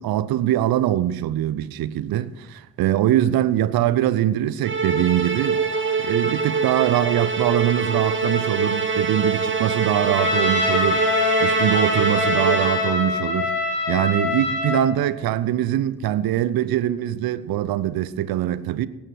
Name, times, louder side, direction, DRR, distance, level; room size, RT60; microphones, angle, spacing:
voice 1, 0.0-5.6 6.0-11.0 11.4-13.5 13.9-18.9, right 12 dB, 50° right, 0.7 m, -23 dB
Musical instrument, 4.6-13.2, right 5 dB, 25° right, 1.6 m, -24 dB
Trumpet, 10.2-14.9, left 4 dB, 60° left, 3.4 m, -24 dB
17.5 x 6.5 x 6.2 m
figure-of-eight pair, 45°, 48 cm